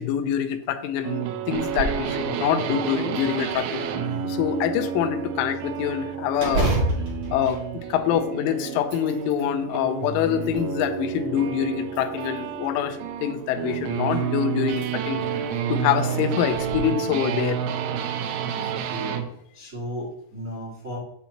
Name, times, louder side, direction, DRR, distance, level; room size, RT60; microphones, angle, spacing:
voice 1, 0.0-3.9 4.2-6.7 7.3-7.6 7.9-15.2 15.7-17.6 18.6-18.7, left 9 dB, 85° left, 8 dB, 3.1 m, -25 dB
sound 1, 1.0-19.3, right 8 dB, 85° right, 3.0 m, -30 dB
sound 2, 1.5-2.1 2.5-2.6 3.2-4.0 6.4-8.4 8.8-9.5 10.1-11.0 11.9-12.6 14.0-14.1 14.7-14.9 15.3-15.4 16.5-16.8, right 2 dB, 45° right, 2.5 m, -29 dB
voice 2, 18.5-19.2 19.5-21.0, equal, 65° right, -7 dB, 0.7 m, -35 dB
7.9 x 7.0 x 2.9 m, 0.76 s
omnidirectional pair, 5.5 m